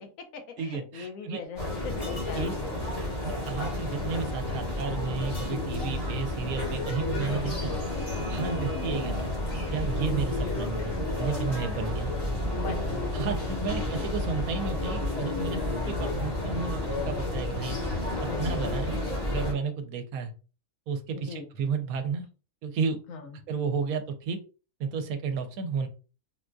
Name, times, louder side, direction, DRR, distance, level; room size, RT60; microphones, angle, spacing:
voice 1, 0.0-2.7 7.3-7.8 10.4-10.7 12.6-13.2 18.1-18.6 21.1-21.5 23.1-23.3, left 5 dB, 70° left, 5 dB, 1.0 m, -41 dB
voice 2, 0.6-1.4 2.3-2.5 3.2-7.8 8.3-9.3 9.7-10.9 11.2-12.1 13.1-15.6 15.9-16.8 17.0-17.9 18.4-19.0 19.3-20.3 20.9-22.3 22.6-23.0 23.5-24.4 24.8-25.9, right 5 dB, 80° right, 7 dB, 1.0 m, -32 dB
sound 1, 1.6-19.5, left 1 dB, 20° left, 1.1 m, -31 dB
sound 2, 2.0-2.4 3.6-3.8 5.3-5.6 6.9-7.1, left 1 dB, 45° left, 1.0 m, -46 dB
sound 3, 5.5-11.7, left 3 dB, 55° right, 1.1 m, -46 dB
3.7 x 2.5 x 2.2 m, 0.34 s
omnidirectional pair, 1.5 m